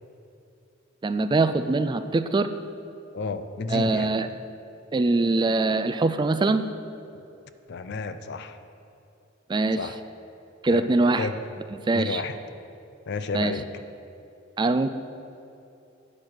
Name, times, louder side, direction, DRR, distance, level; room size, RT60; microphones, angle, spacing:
voice 1, 1.0-2.5 3.7-4.3 4.9-6.6 9.5-9.8 10.6-11.3 11.9-12.2 13.3-13.5 14.6-14.9, right 3 dB, 20° right, 10 dB, 0.3 m, -23 dB
voice 2, 3.1-4.1 7.7-8.6 9.8-10.0 10.7-10.9 11.2-11.4 11.9-12.4 13.1-13.8, left 4 dB, 55° left, 10 dB, 0.5 m, -31 dB
8.8 x 6.1 x 6.6 m, 2.8 s
head